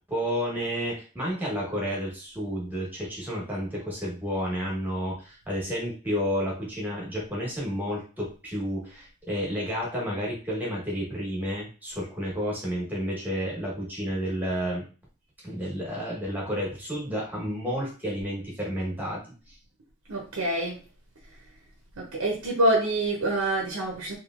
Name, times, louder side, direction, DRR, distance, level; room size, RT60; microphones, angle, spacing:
voice 1, 0.1-14.9 15.4-19.2 19.5-19.6, equal, 10° right, -4 dB, 1.1 m, -31 dB
voice 2, 20.1-20.8 22.0-24.1, right 1 dB, 85° right, -1 dB, 0.7 m, -26 dB
3.1 x 2.7 x 2.5 m, 0.36 s
head